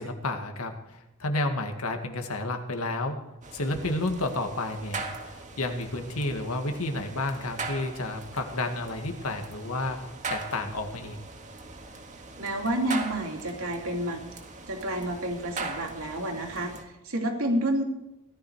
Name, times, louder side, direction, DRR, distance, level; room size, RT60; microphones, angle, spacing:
voice 1, 0.0-3.2 3.5-10.0 10.3-11.2, left 2 dB, 85° left, 5 dB, 1.9 m, -31 dB
sound 1, 3.4-16.8, right 3 dB, 35° right, 1.7 m, -40 dB
voice 2, 12.4-14.2 14.7-17.8, right 1 dB, 70° right, 1 dB, 3.1 m, -29 dB
17.5 x 13.0 x 4.9 m, 0.92 s
head